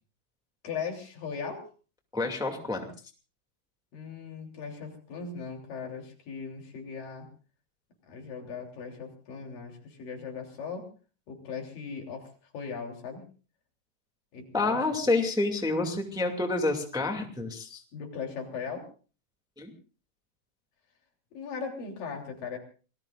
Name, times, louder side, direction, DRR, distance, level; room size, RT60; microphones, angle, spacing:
voice 1, 0.6-1.6 3.9-7.3 8.1-10.9 11.3-13.2 14.3-14.8 17.9-18.9 21.3-22.6, left 5 dB, 90° left, 2 dB, 5.0 m, -38 dB
voice 2, 2.1-2.9 14.5-17.8 19.6-19.7, left 2 dB, ahead, 3 dB, 1.6 m, -28 dB
28.0 x 19.0 x 2.5 m, 0.37 s
omnidirectional pair, 3.8 m